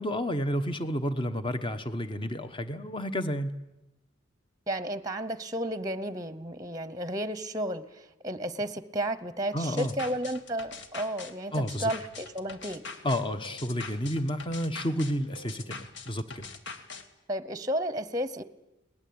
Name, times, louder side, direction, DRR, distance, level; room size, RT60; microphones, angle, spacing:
voice 1, 0.0-3.6 9.5-9.9 11.5-11.9 13.0-16.4, equal, 25° left, 10 dB, 1.2 m, -31 dB
voice 2, 4.7-12.8 17.3-18.4, right 1 dB, 20° right, 14 dB, 0.9 m, -32 dB
sound 1, 9.6-17.0, left 4 dB, 65° left, 1.8 m, -43 dB
22.0 x 19.5 x 8.8 m, 0.93 s
head